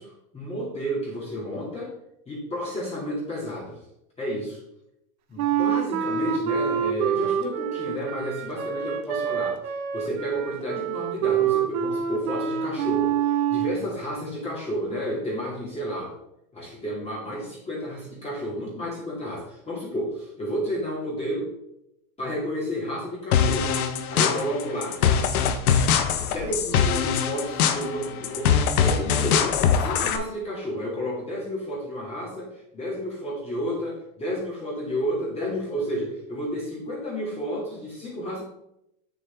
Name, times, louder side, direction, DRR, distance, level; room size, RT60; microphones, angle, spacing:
voice 1, 0.0-1.9 2.3-3.8 4.2-4.6 5.3-13.1 13.5-16.1 16.5-21.5 22.2-25.0 26.0-28.5 28.8-38.4, equal, 15° left, -6 dB, 2.4 m, -31 dB
Wind instrument woodwind instrument, 5.4-13.8, right 8 dB, 80° right, 1.0 m, -26 dB
sound 1, 23.3-30.2, left 7 dB, 85° left, 1.0 m, -23 dB
7.1 x 6.4 x 3.5 m, 0.81 s
supercardioid pair, 130°, 42 cm